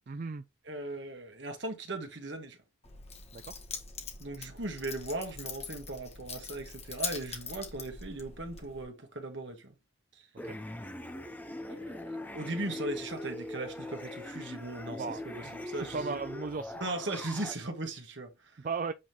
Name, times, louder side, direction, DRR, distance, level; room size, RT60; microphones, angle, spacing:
voice 1, 0.1-0.4 3.3-3.6 10.4-10.6 14.9-16.7 18.6-18.9, right 4 dB, 45° right, 0.4 m, -37 dB
voice 2, 0.6-2.6 4.2-9.8 10.1-10.3 11.6-16.2 16.8-18.6, right 2 dB, 65° right, 1.7 m, -38 dB
Keys jangling, 2.8-8.8, left 5 dB, 35° left, 1.5 m, -42 dB
sound 1, 10.4-17.5, left 1 dB, 10° left, 0.7 m, -41 dB
8.4 x 3.8 x 3.1 m
head